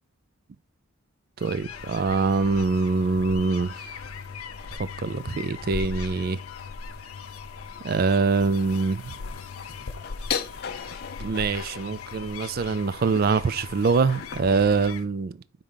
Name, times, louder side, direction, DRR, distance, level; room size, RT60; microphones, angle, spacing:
sound 1, 1.4-15.1, left 4 dB, 75° left, 0.8 m, -40 dB
voice 1, 1.4-3.9 5.0-6.4 7.8-9.1 11.2-15.4, right 4 dB, 45° right, 0.4 m, -24 dB
sound 2, 1.7-14.9, left 7 dB, 45° left, 0.5 m, -40 dB
5.6 x 3.7 x 5.0 m
head